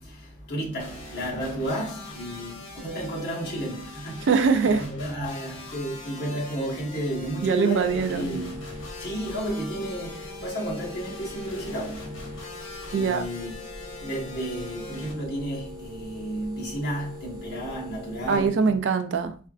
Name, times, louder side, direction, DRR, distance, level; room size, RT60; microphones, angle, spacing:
voice 1, 0.0-4.3 4.6-8.6 9.0-12.4 12.8-13.5 14.0-18.7, right 1 dB, 55° left, 1.2 m, -32 dB
sound 1, 0.8-15.1, left 2 dB, 85° left, 1.1 m, -42 dB
voice 2, 4.3-4.9 7.4-8.4 12.9-13.3 18.3-19.4, right 5 dB, 65° right, 0.3 m, -22 dB
sound 2, 7.8-18.5, left 2 dB, 20° right, 0.8 m, -42 dB
4.2 x 2.4 x 2.4 m
head